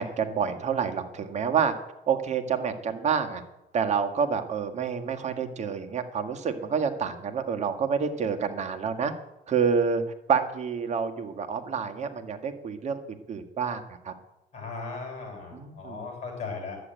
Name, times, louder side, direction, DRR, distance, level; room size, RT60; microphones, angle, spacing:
voice 1, 0.0-1.7 2.1-3.4 3.7-9.1 9.5-10.0 10.3-14.1 15.5-16.0, right 6 dB, 40° right, 6 dB, 1.7 m, -28 dB
voice 2, 14.5-16.8, left 4 dB, 40° left, 2 dB, 6.4 m, -37 dB
11.0 x 8.1 x 8.9 m, 0.92 s
cardioid pair, 110°, 17 cm